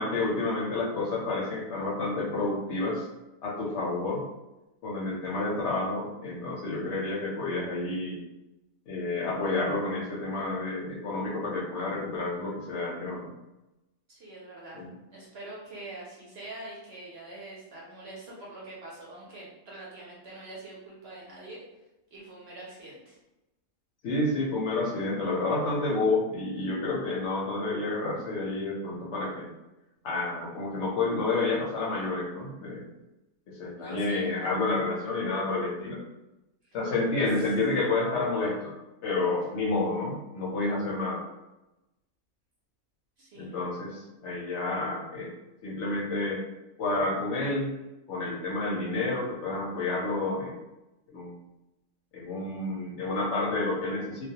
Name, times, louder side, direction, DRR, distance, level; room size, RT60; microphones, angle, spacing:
voice 1, 0.0-3.0 3.4-4.2 4.8-8.2 8.9-13.3 14.7-14.9 24.0-29.5 30.0-32.9 33.5-36.0 36.7-38.7 39.0-41.2 43.4-45.3 45.6-46.4 46.8-47.7 48.1-50.5 51.1-51.4 52.1-54.3, left 2 dB, 65° left, -3 dB, 0.8 m, -29 dB
voice 2, 14.1-14.8 15.1-21.6 22.1-23.2 33.8-34.3 36.6-36.8 37.2-37.3 43.2-43.6, right 2 dB, 60° right, -5 dB, 0.7 m, -44 dB
2.3 x 2.1 x 2.7 m, 0.97 s
omnidirectional pair, 1.4 m